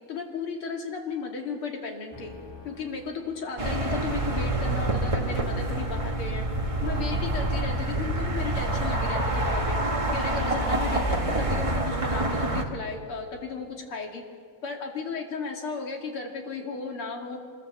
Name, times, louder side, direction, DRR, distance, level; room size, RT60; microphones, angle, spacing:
voice 1, 0.1-2.3 2.6-6.4 6.8-9.8 10.1-14.2 14.6-17.4, left 4 dB, 50° left, 2 dB, 3.2 m, -35 dB
sound 1, 2.1-10.3, right 5 dB, 10° left, 1.4 m, -41 dB
sound 2, 3.6-12.6, right 1 dB, 45° right, 0.4 m, -27 dB
24.5 x 21.5 x 7.5 m, 2.1 s
omnidirectional pair, 3.3 m